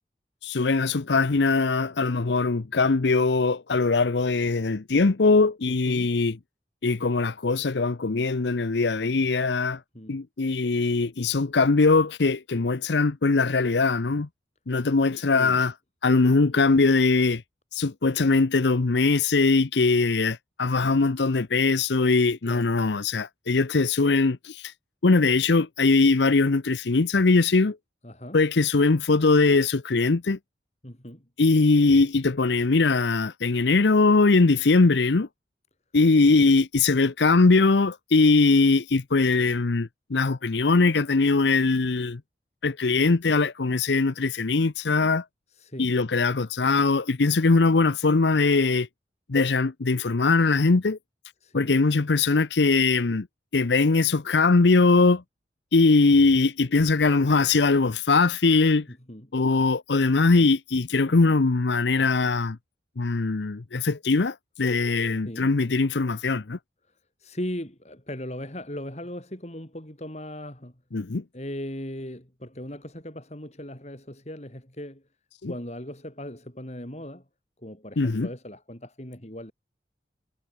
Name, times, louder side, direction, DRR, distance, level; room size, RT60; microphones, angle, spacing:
voice 1, 0.4-6.4 6.8-9.8 10.1-14.3 14.7-15.7 16.0-17.4 17.7-24.7 25.0-27.8 28.3-30.4 31.4-35.3 35.9-42.2 42.6-45.2 45.8-48.9 49.3-51.0 51.5-53.3 53.5-55.2 55.7-58.9 59.3-62.6 63.0-66.6 70.9-71.2 75.4-75.5 78.0-78.3, left 3 dB, 75° left, 0.7 m, -21 dB
voice 2, 5.7-6.1 9.9-10.2 15.3-15.6 22.5-22.7 28.0-28.4 30.8-31.3 36.4-36.5 45.5-45.9 51.4-51.8 58.9-59.3 65.2-65.5 67.2-70.7 71.3-75.0 75.5-77.2 77.6-79.5, left 1 dB, 35° left, 3.6 m, -38 dB
head